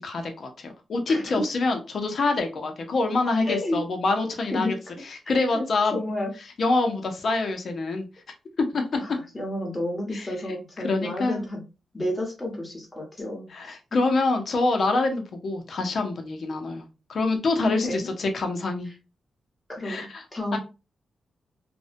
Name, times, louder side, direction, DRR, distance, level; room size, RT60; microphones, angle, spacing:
voice 1, 0.0-4.7 5.1-6.0 6.6-8.0 8.6-8.8 10.1-10.3 10.8-11.4 13.5-16.8 17.1-18.9 19.8-20.2 20.5-20.6, left 3 dB, 55° left, 4 dB, 0.6 m, -26 dB
voice 2, 1.1-1.4 3.4-3.8 4.5-4.7 5.2-5.6 5.9-6.3 9.0-11.6 11.9-13.8 17.6-18.1 19.7-20.6, left 1 dB, 20° left, -1 dB, 1.1 m, -31 dB
2.5 x 2.1 x 2.5 m, 0.30 s
cardioid pair, 105°, 0 cm